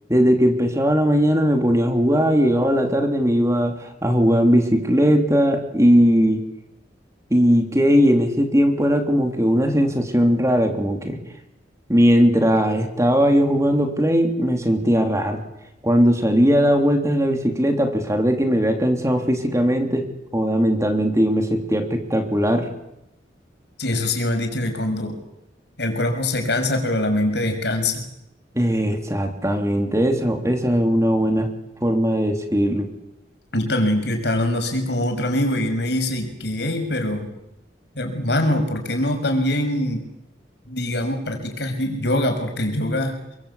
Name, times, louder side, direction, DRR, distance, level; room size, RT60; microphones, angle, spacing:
voice 1, 0.1-6.4 7.3-11.2 11.9-15.4 15.8-20.1 20.3-22.7 28.5-31.5 31.8-32.9, equal, 15° right, 4 dB, 3.4 m, -19 dB
voice 2, 23.8-25.2 25.8-28.0 33.5-37.3 37.9-40.0 40.7-43.2, left 1 dB, 65° left, 5 dB, 6.6 m, -23 dB
29.0 x 23.5 x 8.6 m, 0.85 s
head